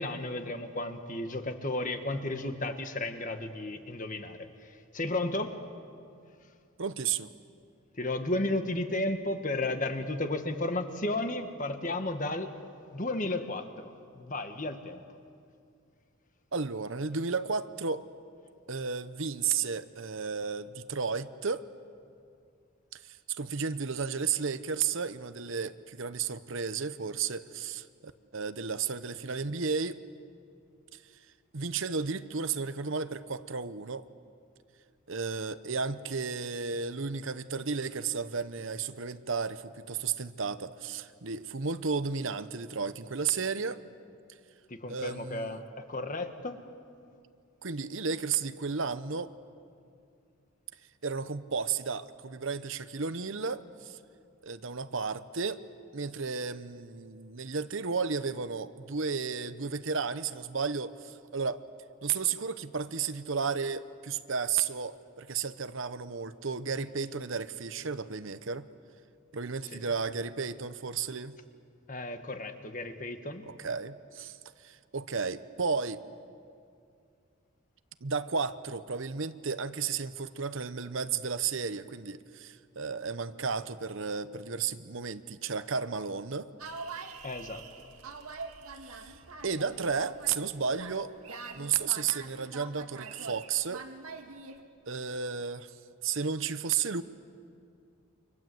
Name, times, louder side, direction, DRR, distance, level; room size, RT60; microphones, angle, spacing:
voice 1, 0.0-4.5 4.9-5.5 8.0-12.5 12.9-15.0 44.8-45.6 45.9-46.6 69.7-69.8 71.9-73.4 87.2-87.6, left 2 dB, 35° left, 7 dB, 1.6 m, -33 dB
voice 2, 6.8-7.3 16.5-18.0 18.7-21.6 23.0-29.9 31.5-34.0 35.1-43.8 44.9-45.6 47.6-49.3 51.0-54.0 54.4-55.6 55.9-61.6 62.0-68.7 69.3-71.4 73.4-74.4 74.6-76.0 78.0-86.5 88.8-89.1 89.4-91.1 91.5-93.8 94.9-95.7 96.0-97.0, right 5 dB, 60° right, 12 dB, 0.9 m, -33 dB
sound 1, 86.6-94.6, right 4 dB, 85° right, 2.1 m, -44 dB
29.5 x 25.5 x 7.9 m, 2.4 s
head